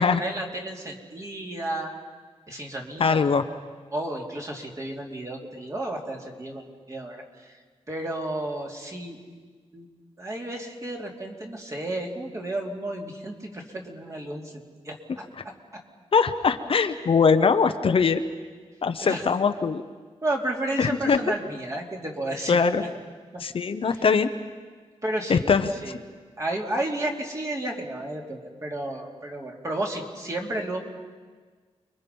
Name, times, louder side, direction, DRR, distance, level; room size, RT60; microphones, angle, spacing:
voice 1, 0.0-1.9 2.5-3.2 3.9-7.5 7.9-9.2 9.7-9.9 10.2-15.5 19.0-19.2 20.2-22.6 23.9-24.0 25.0-25.5 25.8-26.0 26.4-30.8, right 1 dB, 30° right, 0 dB, 2.9 m, -32 dB
voice 2, 3.0-3.4 16.1-18.2 18.8-19.8 20.8-21.2 22.5-22.8 23.4-24.3 25.3-25.7, left 5 dB, 55° left, 8 dB, 0.9 m, -21 dB
29.0 x 23.0 x 5.4 m, 1.5 s
wide cardioid pair, 140°, 11 cm